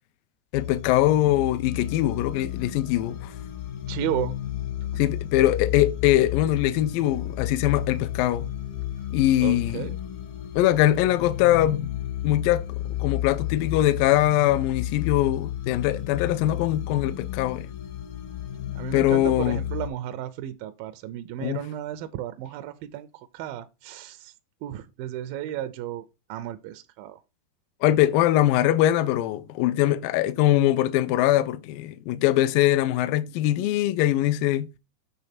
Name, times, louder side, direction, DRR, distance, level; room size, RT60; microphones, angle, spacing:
voice 1, 0.5-3.3 5.0-8.5 9.1-9.9 10.6-11.9 12.2-17.7 18.9-19.6 21.4-21.6 27.8-34.7, left 13 dB, 90° left, 2.0 m, -22 dB
sound 1, 0.5-19.9, left 12 dB, 75° left, 2.8 m, -32 dB
voice 2, 3.9-4.4 4.9-5.0 9.4-10.0 18.8-23.1 23.3-24.3 24.6-27.2, right 12 dB, 85° right, 2.1 m, -33 dB
8.7 x 3.3 x 5.8 m
omnidirectional pair, 4.7 m